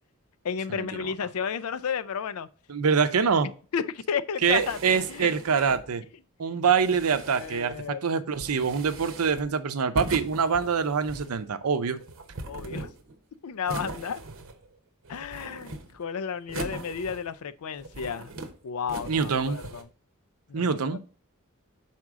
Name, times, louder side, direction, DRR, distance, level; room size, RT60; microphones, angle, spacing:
voice 1, 0.4-2.5 3.4-5.3 5.7-5.8 7.3-8.0 12.5-12.9 13.4-14.2 15.1-18.3 18.6-19.8 20.5-21.0, left 7 dB, 80° left, 0.4 m, -32 dB
voice 2, 2.7-3.5 4.4-6.0 6.4-12.0 19.1-19.6 20.5-21.0, right 6 dB, 85° right, 0.6 m, -25 dB
sound 1, 4.4-5.9 6.7-7.8 8.3-9.5 10.0-11.4 12.0-13.2 13.7-14.7 15.0-16.0 16.5-17.4 17.8-18.5 18.9-19.8, right 2 dB, 65° right, 0.9 m, -40 dB
6.1 x 4.3 x 3.6 m
head